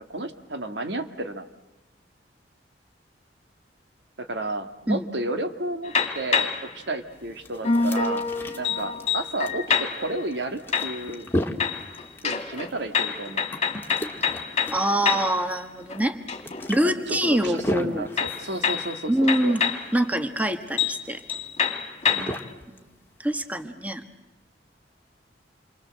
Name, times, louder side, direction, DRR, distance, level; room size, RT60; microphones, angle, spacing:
voice 1, 0.0-1.5 4.2-8.3 8.6-11.3 12.2-13.4 16.8-19.6 22.1-22.4, right 2 dB, 75° right, 8 dB, 1.9 m, -32 dB
sound 1, 5.8-6.7 7.6-10.2 10.7-11.3 11.6-15.4 15.8-16.7 18.2-19.9 20.4-20.5 20.8-21.0 21.3-22.4, left 6 dB, 35° left, 2.5 m, -27 dB
sound 2, 7.1-23.6, left 1 dB, 10° left, 2.0 m, -36 dB
voice 2, 14.7-16.2 16.7-18.1 19.1-19.6 19.9-21.2 22.7-22.8 23.2-24.0, right 1 dB, 10° right, 8 dB, 1.4 m, -24 dB
28.5 x 24.0 x 7.6 m, 1.1 s
head